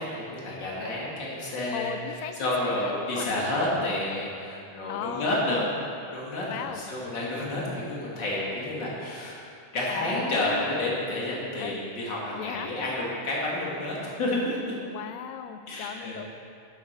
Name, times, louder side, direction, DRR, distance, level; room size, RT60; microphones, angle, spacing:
voice 1, 0.0-5.7 6.1-9.4 9.7-14.6 15.7-16.2, left 1 dB, 35° left, -5 dB, 2.7 m, -30 dB
voice 2, 1.7-3.6 4.9-5.7 6.5-6.8 9.9-10.8 11.6-11.8 12.4-12.7 14.9-16.2, left 9 dB, 90° left, 7 dB, 1.5 m, -37 dB
11.5 x 11.0 x 4.7 m, 2.5 s
omnidirectional pair, 3.7 m